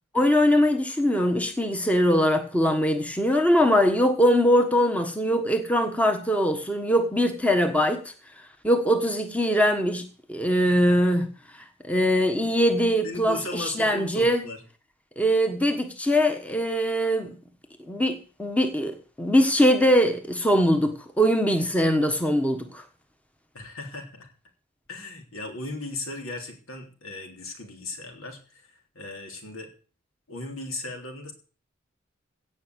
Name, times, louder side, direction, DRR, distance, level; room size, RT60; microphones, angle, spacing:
voice 1, 0.1-8.0 8.6-10.0 10.3-11.3 11.8-14.4 15.2-17.3 17.9-22.8, equal, 5° left, 1.3 m, -22 dB
voice 2, 10.7-11.0 13.0-14.6 23.5-24.3 24.9-29.7 30.3-31.3, left 2 dB, 70° left, 3.5 m, -37 dB
17.0 x 5.9 x 8.0 m
head